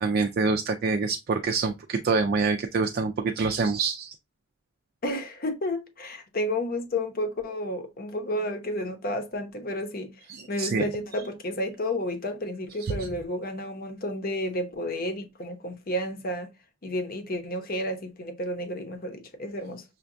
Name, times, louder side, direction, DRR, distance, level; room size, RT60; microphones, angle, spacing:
voice 1, 0.0-4.1 10.3-10.9 12.8-13.1, right 4 dB, 50° right, 0.3 m, -26 dB
voice 2, 5.0-10.1 10.5-16.5 16.8-19.8, left 1 dB, 45° left, 0.8 m, -31 dB
5.7 x 2.3 x 2.5 m
head